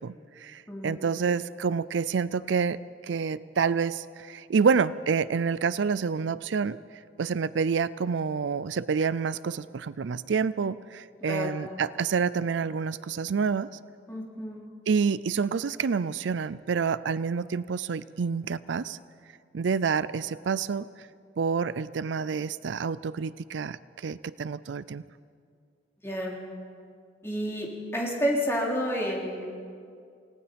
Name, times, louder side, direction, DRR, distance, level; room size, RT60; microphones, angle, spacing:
voice 1, 0.0-2.8 3.1-6.8 7.2-13.7 14.9-19.0 19.5-20.9 21.4-25.0, right 5 dB, 75° right, 17 dB, 0.4 m, -28 dB
voice 2, 0.7-1.0 11.3-11.5 14.1-14.6 26.0-26.3 27.2-27.7 27.9-29.4, equal, 15° left, -2 dB, 3.3 m, -29 dB
28.5 x 18.0 x 5.2 m, 2.3 s
head